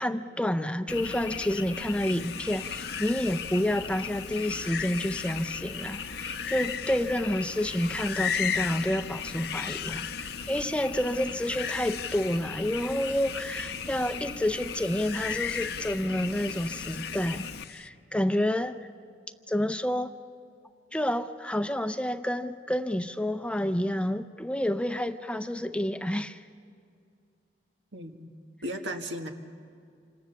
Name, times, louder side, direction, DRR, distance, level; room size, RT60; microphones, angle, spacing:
voice 1, 0.0-18.8 19.5-20.1 20.9-26.4, left 1 dB, 5° left, 10 dB, 0.5 m, -29 dB
Frog, 0.9-17.6, left 5 dB, 90° left, 1.0 m, -38 dB
sound 1, 1.8-17.9, left 8 dB, 60° left, 0.6 m, -38 dB
voice 2, 27.9-28.3 28.6-29.3, equal, 90° right, 4 dB, 1.8 m, -35 dB
28.0 x 25.5 x 7.1 m, 2.3 s
head